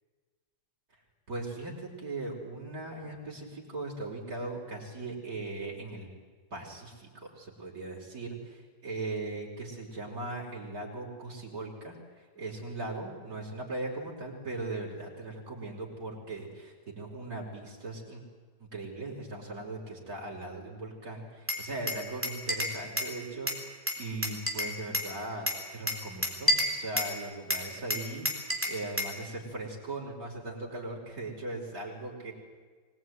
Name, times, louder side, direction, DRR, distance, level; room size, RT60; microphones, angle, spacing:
voice 1, 1.3-6.1 6.5-18.2 18.6-32.3, right 2 dB, 50° right, -3 dB, 5.5 m, -39 dB
Glass, 21.5-23.2 23.5-25.1 25.5-27.2 27.5-29.2, left 1 dB, 5° right, 3.7 m, -30 dB
24.5 x 20.5 x 9.5 m, 1.5 s
omnidirectional pair, 2.0 m